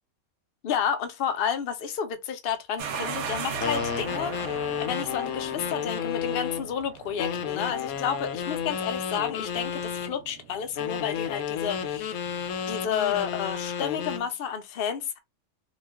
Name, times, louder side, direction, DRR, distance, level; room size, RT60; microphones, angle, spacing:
voice 1, 0.6-12.2 12.7-15.2, left 8 dB, 55° left, 0.6 m, -31 dB
sound 1, 2.8-13.5, right 6 dB, 65° right, 0.8 m, -40 dB
sound 2, 3.6-6.7 7.2-10.1 10.8-14.3, left 8 dB, 80° left, 1.0 m, -32 dB
2.4 x 2.3 x 3.4 m
omnidirectional pair, 1.5 m